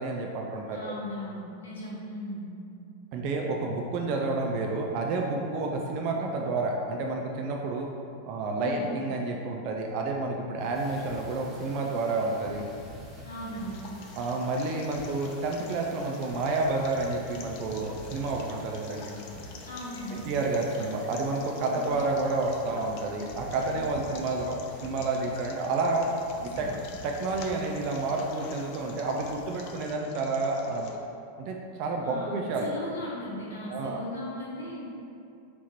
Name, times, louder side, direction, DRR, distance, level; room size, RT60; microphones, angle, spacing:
voice 1, 0.0-0.9 3.1-7.9 8.3-12.6 14.2-19.2 20.1-26.1 26.6-26.7 27.0-30.9 31.4-32.7 33.7-34.0, right 3 dB, 45° right, 0 dB, 0.3 m, -30 dB
voice 2, 0.7-2.4 8.6-8.8 13.3-13.8 19.6-20.2 23.7-23.8 26.5-26.7 32.0-34.9, left 1 dB, 60° left, -7 dB, 0.8 m, -37 dB
sound 1, 10.6-29.9, equal, 10° right, 0.9 m, -47 dB
sound 2, 13.5-30.9, left 4 dB, 45° left, 0.4 m, -47 dB
3.5 x 2.9 x 4.0 m, 2.6 s
figure-of-eight pair, 90°, 0 cm